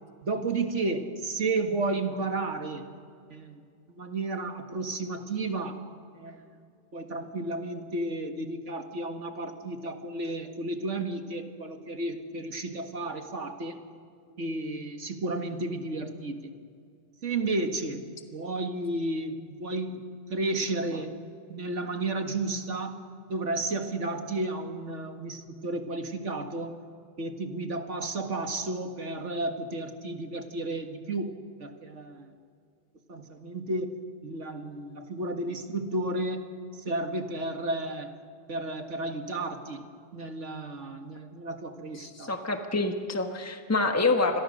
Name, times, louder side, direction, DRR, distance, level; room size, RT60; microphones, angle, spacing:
voice 1, 0.2-2.9 3.3-3.6 4.0-5.8 6.2-6.4 6.9-13.8 14.4-16.5 17.2-20.0 20.3-21.1 21.5-23.0 23.3-26.7 27.2-32.3 33.1-33.9 34.2-36.5 36.9-38.1 38.5-39.9 40.1-42.3, right 2 dB, 85° right, 5 dB, 2.2 m, -32 dB
voice 2, 42.0-44.4, left 3 dB, 15° left, 5 dB, 1.4 m, -27 dB
29.0 x 22.5 x 6.5 m, 2.3 s
omnidirectional pair, 1.2 m